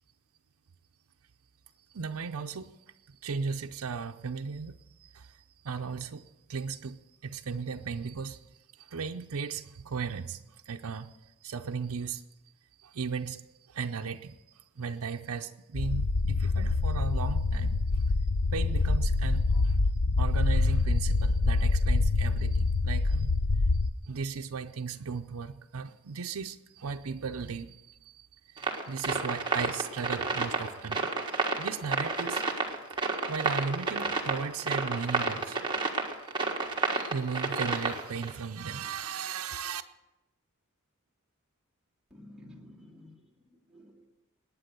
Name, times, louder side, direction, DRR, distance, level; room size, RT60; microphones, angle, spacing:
voice 1, 1.9-2.8 3.1-12.2 12.8-13.4 13.7-18.0 18.5-19.8 20.2-23.3 24.0-32.4 32.9-35.7 36.3-36.4 36.8-39.8, right 5 dB, 70° right, 0.6 m, -36 dB
sound 1, 15.7-23.9, left 3 dB, 55° left, 0.6 m, -26 dB
sound 2, 28.6-38.3, right 3 dB, 20° right, 1.5 m, -30 dB
voice 2, 42.1-44.1, left 1 dB, ahead, 2.5 m, -52 dB
19.5 x 9.1 x 6.7 m
head